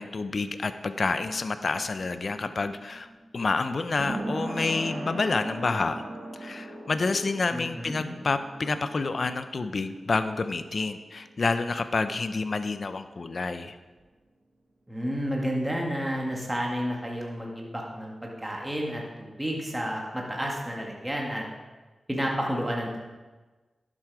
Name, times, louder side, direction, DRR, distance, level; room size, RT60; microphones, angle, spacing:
voice 1, 0.0-3.1 3.3-6.0 6.4-13.8, left 3 dB, 55° left, 10 dB, 0.6 m, -28 dB
sound 1, 1.2-12.4 12.7-12.8, right 1 dB, 55° right, 1.7 m, -40 dB
voice 2, 7.5-8.2 14.9-21.5 22.1-23.0, equal, 10° right, -1 dB, 1.9 m, -31 dB
11.0 x 7.6 x 4.9 m, 1.3 s
cardioid pair, 65°, 0 cm